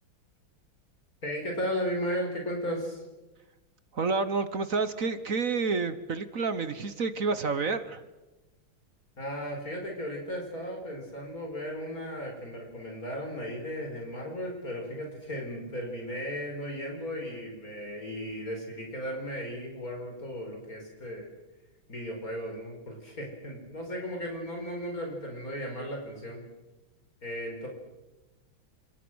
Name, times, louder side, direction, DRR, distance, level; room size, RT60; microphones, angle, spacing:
voice 1, 1.2-3.0 9.2-21.3 21.9-26.4 27.2-27.7, equal, 40° left, 1 dB, 5.4 m, -35 dB
voice 2, 3.9-8.0, right 4 dB, 45° right, 12 dB, 1.3 m, -29 dB
29.0 x 26.5 x 6.3 m, 1.1 s
omnidirectional pair, 2.3 m